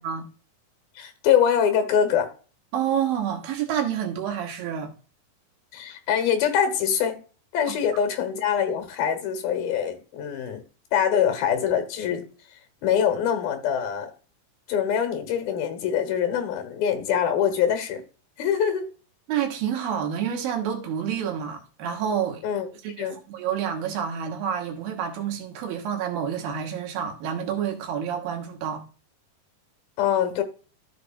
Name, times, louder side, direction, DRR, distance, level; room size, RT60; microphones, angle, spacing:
voice 1, 1.0-2.3 5.7-7.2 7.5-10.6 10.9-12.2 12.8-14.1 14.7-18.0 18.4-18.9 22.4-22.7 23.0-23.2 30.0-30.4, left 8 dB, 85° left, 3.2 m, -24 dB
voice 2, 2.7-4.9 19.3-22.4 22.8-28.8, right 8 dB, 80° right, 3.1 m, -28 dB
13.5 x 6.2 x 2.4 m
omnidirectional pair, 4.1 m